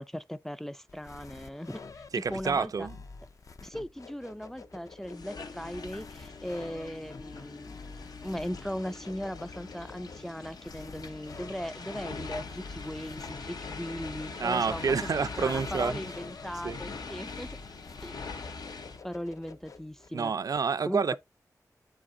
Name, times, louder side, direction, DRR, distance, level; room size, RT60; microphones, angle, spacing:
voice 1, 0.0-1.8 2.1-2.9 3.6-7.8 8.2-17.5 18.0-18.2 19.0-20.3 20.9-21.2, equal, 5° left, 0.3 m, -38 dB
sound 1, 0.9-20.1, left 4 dB, 55° left, 0.6 m, -49 dB
voice 2, 2.1-3.0 14.4-16.0 16.6-16.8 20.1-21.2, right 5 dB, 65° right, 0.4 m, -28 dB
sound 2, 5.0-19.0, left 4 dB, 80° left, 0.9 m, -42 dB
8.8 x 4.1 x 2.6 m
wide cardioid pair, 105°, 7 cm